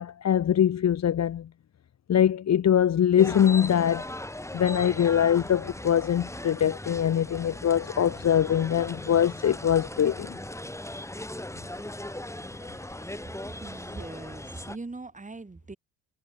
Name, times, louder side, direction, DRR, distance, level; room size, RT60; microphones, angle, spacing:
voice 1, 0.0-1.5 2.1-4.1 4.5-10.4, left 9 dB, 45° left, 0.9 m, -23 dB
sound 1, 3.2-14.8, left 1 dB, 5° left, 4.6 m, -38 dB
voice 2, 13.3-15.8, right 3 dB, 20° right, 4.6 m, -41 dB
cardioid pair, 80°, 39 cm